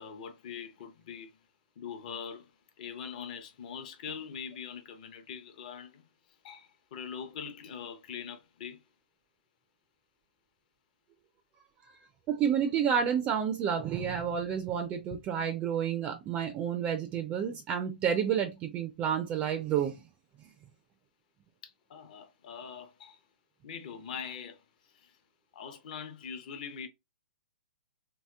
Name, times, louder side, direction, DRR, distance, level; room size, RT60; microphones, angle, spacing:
voice 1, 0.0-1.4 1.8-2.5 2.8-6.1 6.4-8.8 21.6-23.2 23.6-25.2 25.5-26.9, left 7 dB, 50° left, 0.6 m, -43 dB
voice 2, 12.3-20.0 20.4-20.5, right 8 dB, 25° right, 0.4 m, -30 dB
2.8 x 2.8 x 2.2 m
hypercardioid pair, 140°, 6 cm